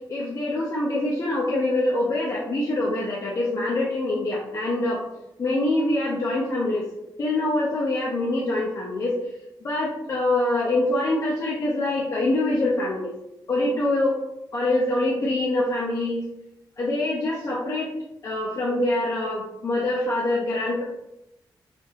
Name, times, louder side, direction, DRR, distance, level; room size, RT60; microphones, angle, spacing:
voice 1, 0.1-5.0 5.4-6.9 7.2-9.2 9.6-13.1 13.5-14.2 14.5-16.2 16.8-17.9 18.2-20.8, left 2 dB, 40° left, -5 dB, 0.6 m, -24 dB
3.4 x 3.4 x 2.9 m, 0.88 s
wide cardioid pair, 175°, 8 cm